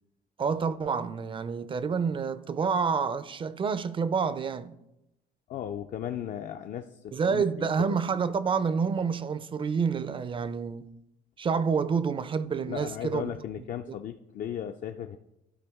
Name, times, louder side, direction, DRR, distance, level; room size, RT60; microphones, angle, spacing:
voice 1, 0.4-4.8 7.1-10.9 11.4-13.3 13.9-14.0, right 5 dB, 30° right, 0.4 m, -28 dB
voice 2, 5.5-8.0 12.6-15.2, left 9 dB, 50° left, 0.4 m, -36 dB
12.5 x 4.7 x 3.5 m
cardioid pair, 110°, 17 cm